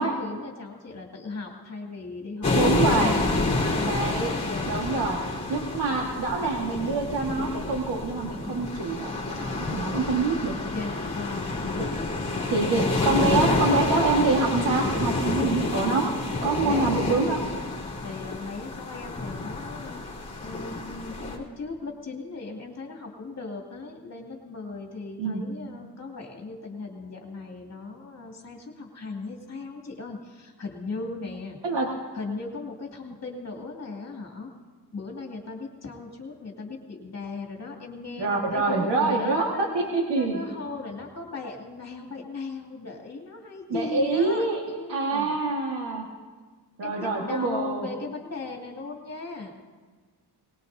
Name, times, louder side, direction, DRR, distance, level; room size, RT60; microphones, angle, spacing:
voice 1, 0.0-3.9 4.4-4.9 10.7-13.5 16.6-16.9 18.0-31.6 32.1-34.5 34.9-39.7 40.1-45.4 46.8-49.5, left 3 dB, 40° left, 0 dB, 2.5 m, -37 dB
sound 1, 2.4-21.4, left 2 dB, 20° left, 3.3 m, -28 dB
voice 2, 2.5-3.1 3.8-4.3 4.7-5.2 5.5-10.6 11.8-11.9 12.5-16.1 16.4-17.4 25.2-25.4 31.6-31.9 38.2-40.4 43.7-44.6 44.9-46.0 46.8-47.9, right 3 dB, 80° right, -1 dB, 1.7 m, -26 dB
22.0 x 19.5 x 2.7 m, 1.5 s
wide cardioid pair, 165°, 41 cm